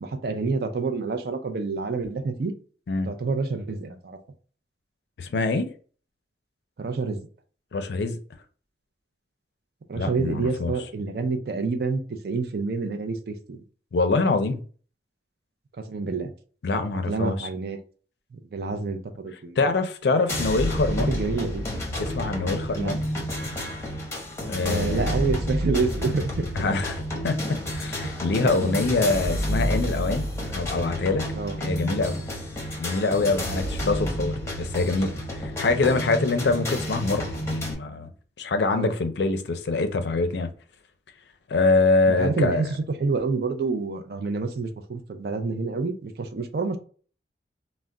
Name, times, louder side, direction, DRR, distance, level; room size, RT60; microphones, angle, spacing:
voice 1, 0.0-2.5 3.0-4.2 6.8-7.3 9.9-13.6 15.9-16.3 17.1-17.8 18.3-19.7 20.9-21.7 22.8-22.9 24.4-26.4 28.5-28.8 31.3-31.6 38.7-38.9 42.1-46.8, right 4 dB, 60° right, 0.4 m, -28 dB
voice 2, 5.2-5.7 7.7-8.2 9.9-10.7 13.9-14.6 16.6-17.5 19.6-21.2 22.0-23.0 24.5-25.3 26.6-27.0 27.2-31.3 31.6-32.2 32.8-35.1 35.6-38.1 38.4-40.5 41.5-42.6, left 3 dB, 75° left, 0.4 m, -24 dB
sound 1, 20.3-37.7, equal, 15° left, 0.8 m, -30 dB
2.2 x 2.1 x 3.6 m
head